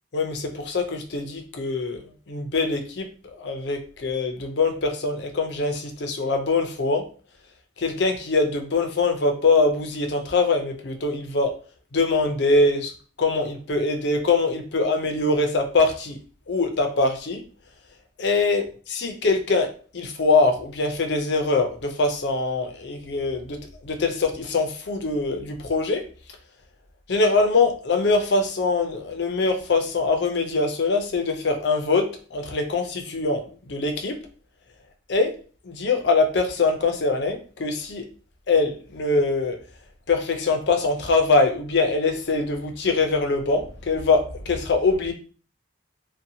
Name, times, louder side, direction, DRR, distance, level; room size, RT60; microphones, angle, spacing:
voice 1, 0.1-2.0 2.3-3.1 3.4-7.1 7.8-11.5 11.9-12.9 13.2-16.2 16.5-17.4 18.2-18.6 18.9-23.6 23.8-26.0 27.1-34.2 35.1-35.3 35.7-38.0 38.5-39.6 40.1-45.1, left 3 dB, 60° left, 4 dB, 0.5 m, -23 dB
2.7 x 2.2 x 2.6 m, 0.38 s
head